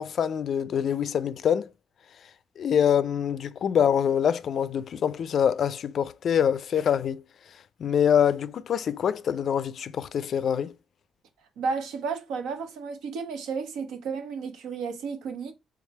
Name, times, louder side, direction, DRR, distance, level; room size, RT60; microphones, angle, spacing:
voice 1, 0.0-1.7 2.6-7.2 7.8-10.7, left 8 dB, 60° left, 0.3 m, -25 dB
voice 2, 11.6-15.5, right 5 dB, 85° right, 0.8 m, -32 dB
3.5 x 3.3 x 3.1 m
cardioid pair, 90°, 0 cm